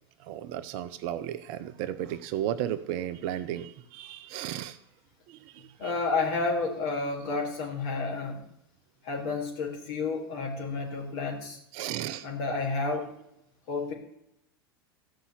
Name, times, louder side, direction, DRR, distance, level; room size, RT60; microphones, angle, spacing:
voice 1, 0.2-4.8 5.3-5.9 11.7-12.3, right 11 dB, 45° right, 13 dB, 0.7 m, -34 dB
voice 2, 5.8-8.4 9.0-11.6 12.2-13.1 13.7-13.9, left 3 dB, 50° left, 2 dB, 4.0 m, -30 dB
14.5 x 5.6 x 8.3 m, 0.76 s
figure-of-eight pair, 85°, 13 cm